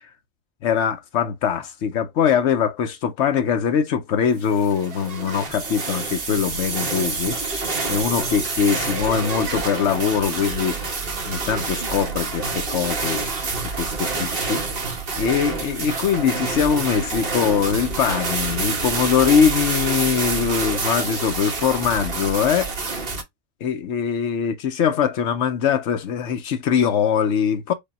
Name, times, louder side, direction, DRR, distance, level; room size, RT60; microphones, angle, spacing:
voice 1, 0.6-10.8 11.3-13.3 13.7-14.6 15.2-22.7 23.6-27.7, left 7 dB, 85° left, 1.0 m, -22 dB
sound 1, 4.5-23.2, right 4 dB, 55° right, 1.3 m, -27 dB
5.2 x 2.3 x 4.0 m
omnidirectional pair, 1.2 m